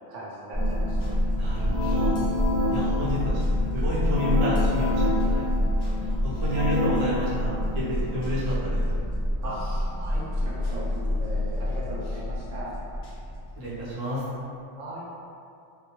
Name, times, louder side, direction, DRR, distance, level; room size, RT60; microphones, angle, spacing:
voice 1, 0.1-1.0 9.4-9.6 10.0-10.9 11.2-12.7 14.8-15.1, right 1 dB, 75° right, -7 dB, 1.0 m, -38 dB
sound 1, 0.5-10.0 10.3-13.2 13.6-13.7, left 1 dB, 55° left, 0.5 m, -31 dB
sound 2, 0.5-13.4, left 1 dB, 15° right, 0.9 m, -27 dB
voice 2, 1.4-2.2 2.7-3.2 3.7-5.0 5.3-5.5 6.0-7.6 7.9-8.9 13.6-14.2, equal, 45° right, -9 dB, 0.5 m, -30 dB
2.2 x 2.1 x 2.9 m, 2.5 s
omnidirectional pair, 1.3 m